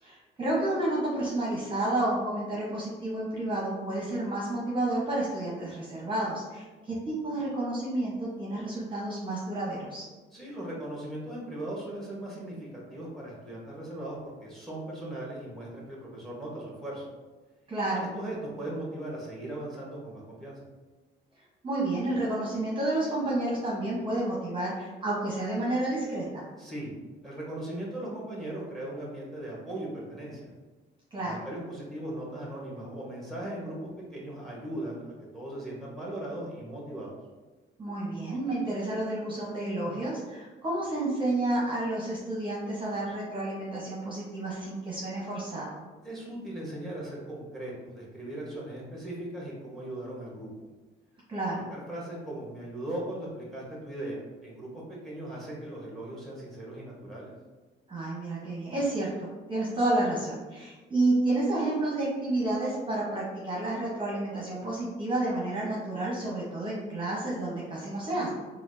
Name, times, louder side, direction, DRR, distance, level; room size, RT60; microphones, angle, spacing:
voice 1, 0.0-10.0 17.7-18.1 21.6-26.4 31.1-31.4 37.8-45.8 51.3-51.7 57.9-68.3, right 2 dB, 25° right, -6 dB, 0.9 m, -30 dB
voice 2, 10.3-17.1 18.1-20.6 26.6-26.9 27.2-30.5 31.2-37.1 46.0-50.7 51.7-57.3, right 1 dB, ahead, -4 dB, 1.2 m, -38 dB
4.3 x 2.2 x 2.7 m, 1.3 s
cardioid pair, 90°, 20 cm